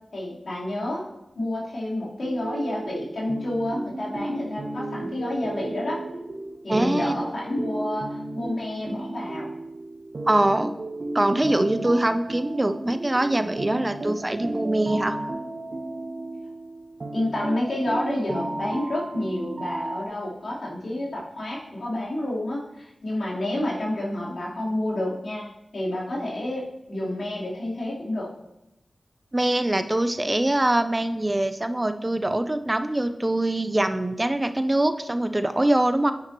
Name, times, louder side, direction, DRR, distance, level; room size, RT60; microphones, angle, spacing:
voice 1, 0.1-1.0 1.3-6.0 6.6-9.5 17.1-25.5 25.7-28.3, left 1 dB, 75° left, -7 dB, 3.9 m, -29 dB
sound 1, 2.2-20.0, right 2 dB, 65° right, 0.8 m, -34 dB
voice 2, 6.7-7.1 10.3-10.7 11.1-15.2 29.3-36.1, right 1 dB, 30° right, 9 dB, 0.6 m, -23 dB
10.0 x 9.6 x 3.1 m, 0.88 s
cardioid pair, 40°, 0 cm